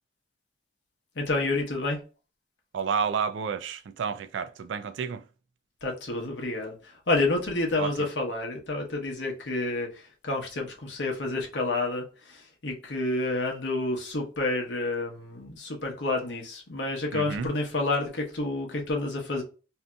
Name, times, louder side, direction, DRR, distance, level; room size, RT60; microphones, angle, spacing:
voice 1, 1.2-2.0 5.8-19.4, left 2 dB, 75° left, 0.9 m, -29 dB
voice 2, 2.7-5.2 7.8-7.9 17.1-17.5, right 6 dB, 85° right, 0.3 m, -30 dB
2.7 x 2.5 x 2.2 m
head